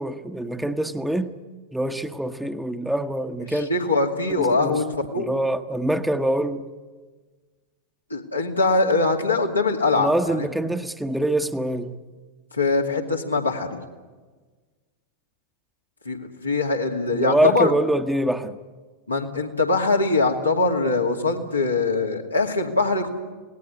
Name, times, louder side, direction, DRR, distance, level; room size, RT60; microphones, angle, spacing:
voice 1, 0.0-1.3 1.7-3.7 4.4-4.8 5.2-6.7 9.9-12.0 17.1-18.6, right 1 dB, 5° right, 1.1 m, -25 dB
voice 2, 3.5-4.9 5.1-5.3 8.1-10.5 12.5-13.8 16.0-17.7 19.1-23.1, left 3 dB, 85° left, 2.6 m, -22 dB
26.5 x 18.5 x 9.7 m
figure-of-eight pair, 90°, 0 cm